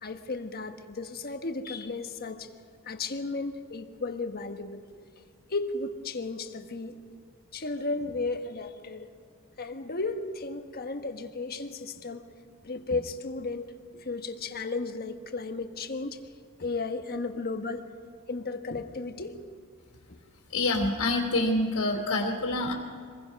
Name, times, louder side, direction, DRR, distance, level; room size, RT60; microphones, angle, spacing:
voice 1, 0.0-2.5 2.8-4.8 5.5-6.9 7.5-9.1 9.6-12.2 12.6-16.2 16.6-17.9 18.3-19.4 20.1-20.2 21.9-22.0, left 3 dB, 45° left, 6 dB, 1.3 m, -34 dB
voice 2, 20.5-22.7, left 2 dB, 80° left, -1 dB, 3.0 m, -26 dB
25.5 x 21.0 x 5.3 m, 2.2 s
head